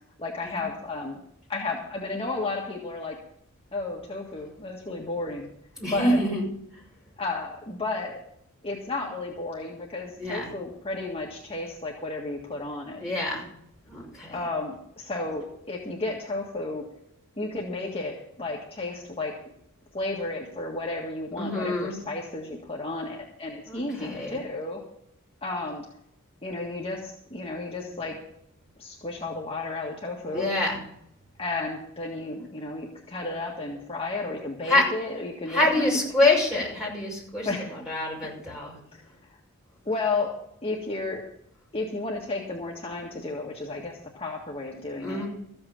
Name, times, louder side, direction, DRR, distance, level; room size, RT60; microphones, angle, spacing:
voice 1, 0.2-1.2 1.5-3.2 3.7-5.5 5.9-6.2 7.2-8.2 8.6-13.0 14.3-16.8 17.4-19.4 19.9-24.8 25.4-25.9 26.4-28.2 28.8-30.5 31.4-35.9 37.4-37.7 38.9-39.0 39.9-40.3 40.6-41.2 41.7-45.2, left 3 dB, 25° left, -2 dB, 1.7 m, -33 dB
voice 2, 5.8-6.4 10.2-10.5 13.0-13.5 13.9-14.4 21.4-22.0 23.7-24.4 30.3-30.8 34.7-34.8 35.5-38.8 44.9-45.3, left 1 dB, 5° right, -3 dB, 5.7 m, -26 dB
14.5 x 7.9 x 7.2 m, 0.73 s
head